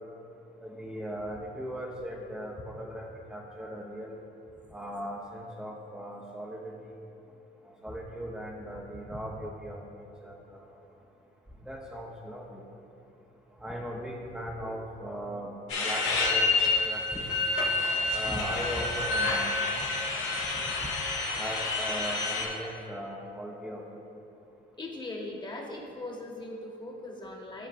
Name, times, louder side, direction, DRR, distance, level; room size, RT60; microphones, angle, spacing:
voice 1, 0.6-4.2 4.7-6.9 7.8-10.7 11.6-12.6 13.6-15.5 15.8-17.2 18.1-19.6 21.4-23.8, equal, 5° right, -4 dB, 0.8 m, -38 dB
sound 1, 15.7-22.5, left 3 dB, 90° left, 1.3 m, -28 dB
voice 2, 24.8-27.7, left 2 dB, 25° left, -2 dB, 1.3 m, -39 dB
13.0 x 4.4 x 2.6 m, 2.8 s
cardioid pair, 90°, 20 cm